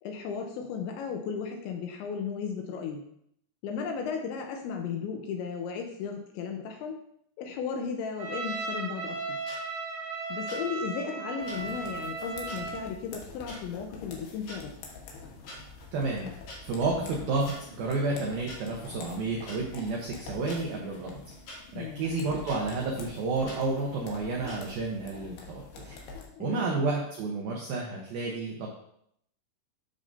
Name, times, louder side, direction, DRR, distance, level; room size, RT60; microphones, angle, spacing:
voice 1, 0.0-3.0 3.6-7.0 7.4-9.4 10.3-14.7 21.8-22.1 26.3-26.7, left 6 dB, 80° left, 3 dB, 2.8 m, -35 dB
Trumpet, 8.2-12.9, right 4 dB, 55° right, 2.6 m, -36 dB
sound 1, 9.5-9.6 10.5-10.6 11.5-11.6 12.5-12.6 13.5-13.6 14.3-14.6 15.5-15.6 16.5-16.6 17.5-17.6 18.5-18.6 19.5-19.6 20.5-20.6 21.5-21.6 22.5-22.6 23.5-23.6 24.5-24.6, left 1 dB, 50° left, 3.7 m, -43 dB
sound 2, 11.4-26.3, left 4 dB, 65° left, 2.6 m, -46 dB
voice 2, 15.9-16.3 16.6-21.2 21.7-26.0 26.4-28.7, right 3 dB, 80° right, -2 dB, 2.1 m, -31 dB
12.0 x 6.5 x 2.7 m, 0.71 s
omnidirectional pair, 5.8 m